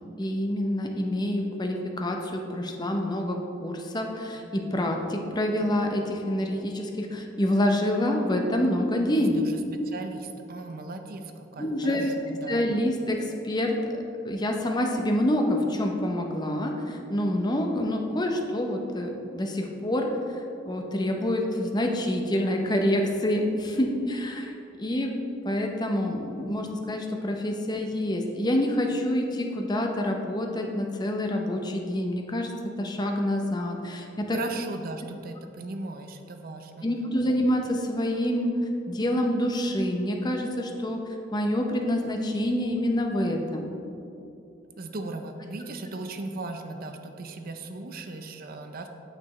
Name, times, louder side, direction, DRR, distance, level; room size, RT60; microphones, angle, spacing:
voice 1, 0.2-9.4 11.6-12.2 12.5-13.8 14.2-20.1 20.6-24.5 24.8-25.2 25.4-32.5 32.8-34.4 36.8-38.5 38.9-41.0 41.3-43.7, left 1 dB, 20° left, 2 dB, 0.7 m, -27 dB
voice 2, 9.2-12.6 34.3-36.9 44.8-48.9, right 2 dB, 50° right, 6 dB, 0.6 m, -37 dB
8.6 x 6.8 x 3.2 m, 2.8 s
head